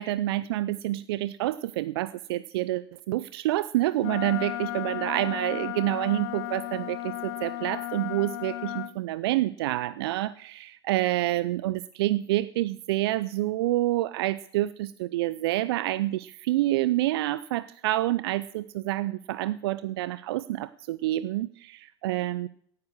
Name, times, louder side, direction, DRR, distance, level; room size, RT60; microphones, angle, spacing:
voice 1, 0.0-22.5, right 16 dB, 65° right, 16 dB, 0.5 m, -28 dB
Wind instrument woodwind instrument, 4.0-8.9, left 16 dB, 55° left, 1.0 m, -34 dB
16.5 x 9.6 x 6.5 m, 0.67 s
hypercardioid pair, 95°, 14 cm